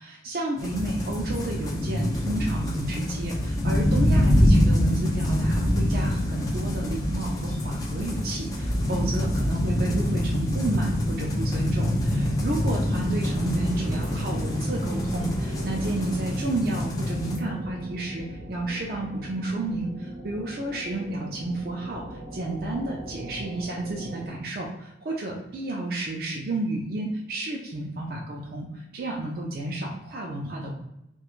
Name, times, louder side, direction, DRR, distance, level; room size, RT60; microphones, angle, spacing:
voice 1, 0.0-30.7, right 2 dB, 55° right, -2 dB, 0.4 m, -31 dB
sound 1, 0.6-17.4, left 1 dB, 20° left, 0.3 m, -25 dB
sound 2, 5.3-24.3, right 1 dB, 90° right, 0.9 m, -41 dB
sound 3, 10.6-17.3, equal, 15° right, 1.1 m, -39 dB
3.0 x 2.2 x 2.4 m, 0.85 s
head